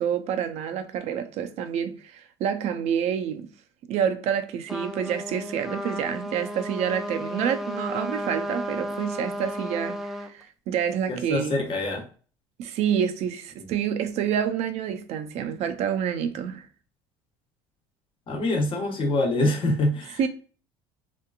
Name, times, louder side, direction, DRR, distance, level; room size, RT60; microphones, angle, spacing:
voice 1, 0.0-3.5 3.9-11.6 12.6-16.7 20.2-20.3, right 8 dB, 60° right, 0.5 m, -28 dB
Trumpet, 4.7-10.3, equal, 5° right, 0.3 m, -33 dB
voice 2, 11.1-12.1 18.3-20.2, left 1 dB, 45° left, 1.0 m, -25 dB
3.0 x 2.4 x 2.3 m
supercardioid pair, 90°, 12 cm